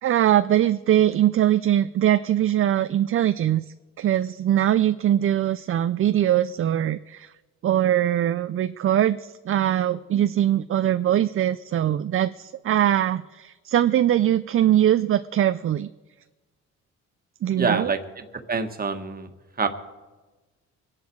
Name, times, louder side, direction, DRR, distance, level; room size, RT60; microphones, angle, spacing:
voice 1, 0.0-3.6 4.0-7.3 7.6-15.9 17.4-17.9, right 11 dB, 45° right, 12 dB, 0.5 m, -22 dB
voice 2, 17.6-19.3 19.6-19.7, right 4 dB, 30° right, 6 dB, 1.6 m, -26 dB
24.0 x 10.5 x 4.6 m, 1.2 s
cardioid pair, 90°, 30 cm